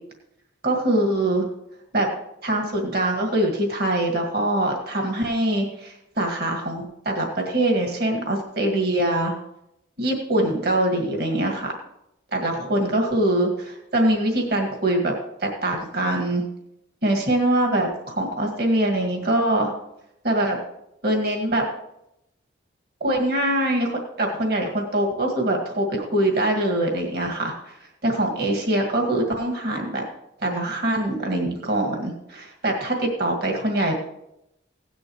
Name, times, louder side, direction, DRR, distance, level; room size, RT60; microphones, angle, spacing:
voice 1, 0.6-1.5 1.9-2.1 2.4-9.4 10.0-11.7 12.3-15.1 15.4-16.4 17.0-19.7 20.2-20.6 21.0-21.6 23.0-23.9 24.2-27.8 28.0-30.1 30.4-33.9, right 1 dB, 50° right, 1 dB, 1.9 m, -23 dB
16.5 x 10.5 x 3.1 m, 0.82 s
head